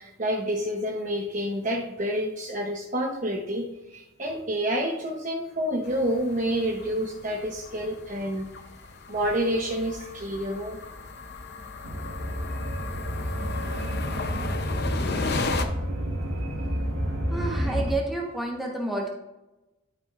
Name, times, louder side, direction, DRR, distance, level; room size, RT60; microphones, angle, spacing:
voice 1, 0.0-8.5 9.1-10.8, equal, 40° right, -1 dB, 0.9 m, -28 dB
sound 1, 5.8-15.6, left 3 dB, 55° left, 0.7 m, -35 dB
sound 2, 11.8-17.9, equal, 80° right, 1.6 m, -30 dB
voice 2, 17.3-19.1, right 2 dB, ahead, -1 dB, 1.1 m, -30 dB
12.0 x 5.5 x 2.5 m, 0.97 s
head